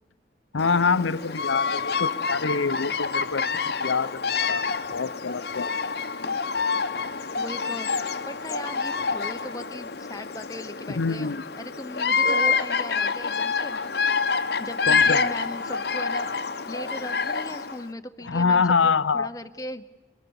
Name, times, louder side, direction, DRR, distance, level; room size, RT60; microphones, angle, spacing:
voice 1, 0.5-4.6 4.9-5.7 10.9-11.4 14.8-15.2 18.2-19.3, left 5 dB, 80° left, 13 dB, 0.7 m, -25 dB
Bird vocalization bird call bird song, 0.6-17.8, left 5 dB, 55° left, 0.9 m, -27 dB
voice 2, 7.3-13.8 14.6-16.3 16.7-19.8, left 1 dB, 20° left, 8 dB, 0.8 m, -38 dB
25.0 x 24.0 x 7.0 m, 1.2 s
head